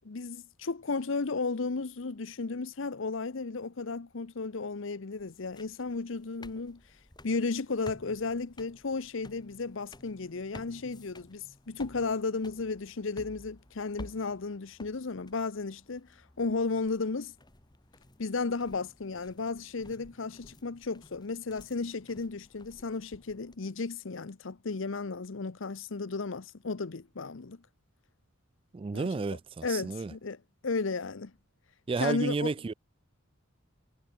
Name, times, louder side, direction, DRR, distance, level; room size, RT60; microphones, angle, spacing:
voice 1, 0.0-6.8 7.2-16.1 16.4-17.3 18.2-27.6 28.9-29.1 29.6-30.4 30.6-31.3 32.0-32.5, left 4 dB, 65° left, 0.8 m, -34 dB
sound 1, 5.1-23.6, left 1 dB, 20° left, 1.6 m, -53 dB
voice 2, 28.7-30.1 31.9-32.7, right 4 dB, 25° right, 0.3 m, -31 dB
head